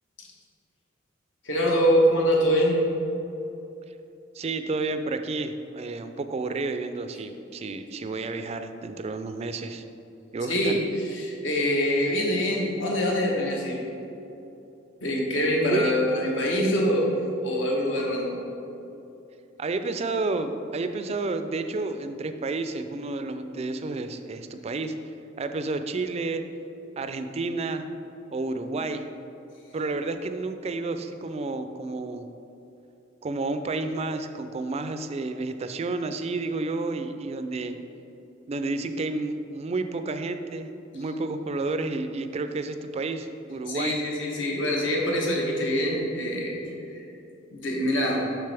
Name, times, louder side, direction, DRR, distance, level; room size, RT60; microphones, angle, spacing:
voice 1, 1.4-2.8 10.5-13.8 15.0-17.1 17.4-18.4 43.7-46.6 46.9-47.1 47.5-48.2, equal, 70° left, -2 dB, 1.2 m, -24 dB
voice 2, 4.3-9.8 10.3-10.8 15.7-16.0 19.6-25.0 25.4-26.4 27.0-27.9 28.3-29.1 29.7-32.3 33.2-37.7 38.5-44.0, right 3 dB, 35° right, 9 dB, 0.3 m, -30 dB
6.7 x 6.1 x 3.4 m, 2.9 s
head